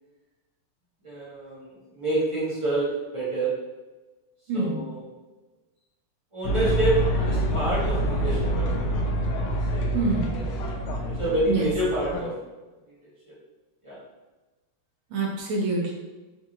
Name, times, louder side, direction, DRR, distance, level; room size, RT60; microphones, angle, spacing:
voice 1, 1.0-3.5 4.5-5.1 6.3-7.0 7.2-8.8 9.7-9.9 10.3-10.4 11.0-12.3 13.3-13.4 13.8-14.0, right 1 dB, 35° right, -8 dB, 0.4 m, -28 dB
voice 2, 4.5-4.8 9.9-10.4 11.5-11.7 15.1-15.9, right 3 dB, 70° right, -2 dB, 1.6 m, -26 dB
sound 1, 6.4-12.2, equal, 80° left, 1.5 m, -26 dB
4.5 x 2.5 x 2.8 m, 1.2 s
omnidirectional pair, 2.4 m